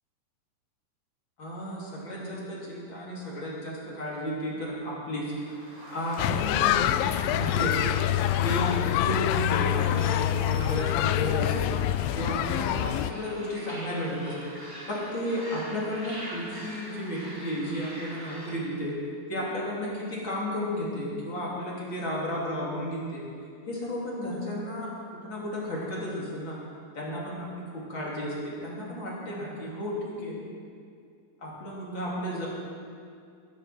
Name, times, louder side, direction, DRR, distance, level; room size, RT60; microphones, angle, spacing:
voice 1, 1.4-5.3 5.9-8.0 8.4-11.7 12.1-14.5 14.9-19.0 19.3-23.3 23.7-26.6 26.9-30.4 31.4-32.5, equal, 35° left, -6 dB, 3.6 m, -33 dB
sound 1, 5.3-18.6, equal, 5° right, 3.6 m, -44 dB
sound 2, 6.2-13.1, left 12 dB, 85° left, 2.2 m, -26 dB
21.5 x 11.5 x 4.5 m, 2.3 s
omnidirectional pair, 4.0 m